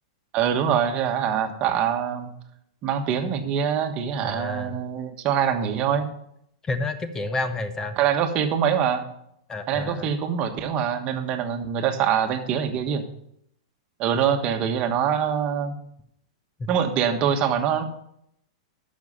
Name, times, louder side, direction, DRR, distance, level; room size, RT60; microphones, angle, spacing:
voice 1, 0.3-2.3 2.8-6.1 8.0-9.1 9.7-13.0 14.0-15.8 16.7-17.8, right 8 dB, 35° right, 6 dB, 1.3 m, -24 dB
voice 2, 4.2-4.8 6.6-8.0 9.5-10.1 16.6-16.7, left 2 dB, 15° left, 10 dB, 0.9 m, -30 dB
10.5 x 6.4 x 5.6 m, 0.73 s
hypercardioid pair, 130°, 3 cm